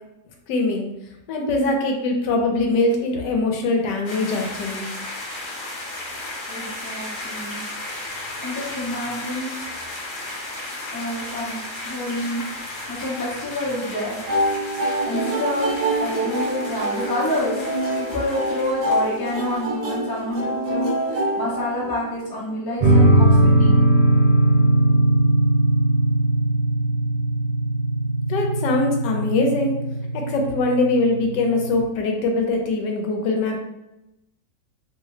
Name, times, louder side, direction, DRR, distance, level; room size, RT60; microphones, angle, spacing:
voice 1, 0.5-0.9 1.3-4.9 28.3-29.8 30.1-33.6, left 2 dB, 75° left, 1 dB, 1.2 m, -22 dB
sound 1, 4.1-19.7, left 2 dB, 55° left, 1.0 m, -35 dB
voice 2, 6.5-7.6 8.4-9.5 10.9-11.6 11.8-12.4 12.7-14.2 15.1-17.6 17.9-23.8, left 1 dB, 30° left, -5 dB, 0.4 m, -28 dB
sound 2, 14.3-22.2, right 1 dB, 55° right, 1.1 m, -26 dB
sound 3, 22.8-31.8, right 1 dB, 85° right, 1.3 m, -19 dB
3.1 x 2.0 x 3.6 m, 0.91 s
omnidirectional pair, 1.9 m